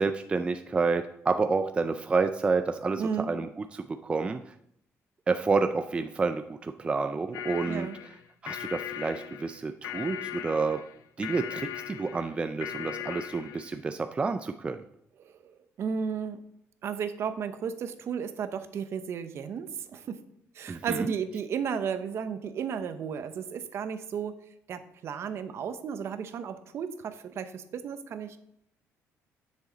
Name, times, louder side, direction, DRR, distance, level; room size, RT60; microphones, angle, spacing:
voice 1, 0.0-4.5 5.3-7.9 8.4-10.8 11.2-14.8 20.7-21.1, right 4 dB, 20° right, 8 dB, 0.4 m, -29 dB
voice 2, 3.0-3.3 7.7-8.0 15.2-16.4 16.8-20.2 20.5-24.4 24.7-28.4, right 7 dB, 55° right, 10 dB, 0.8 m, -34 dB
sound 1, 7.3-13.8, left 11 dB, 75° left, 0.5 m, -39 dB
10.0 x 6.4 x 3.9 m, 0.73 s
cardioid pair, 140°, 5 cm